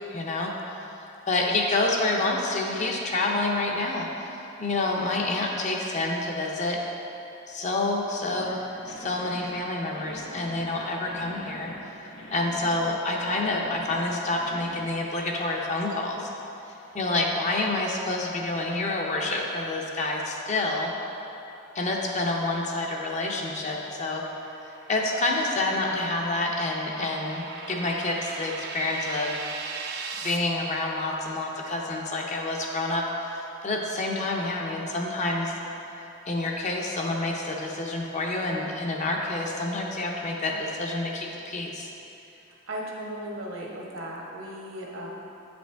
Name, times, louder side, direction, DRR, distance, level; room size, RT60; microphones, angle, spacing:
voice 1, 0.1-0.5 1.3-6.8 7.5-8.6 8.8-11.7 12.3-16.3 16.9-20.9 21.7-24.2 24.7-29.3 30.2-35.5 36.3-41.9, left 2 dB, 35° left, 0 dB, 0.6 m, -28 dB
sound 1, 8.3-14.8, equal, 85° left, 0.9 m, -44 dB
sound 2, 23.6-30.4, right 4 dB, 50° right, 0.5 m, -39 dB
voice 2, 42.7-45.1, right 1 dB, 75° right, -3 dB, 1.2 m, -36 dB
8.4 x 5.1 x 3.4 m, 2.9 s
head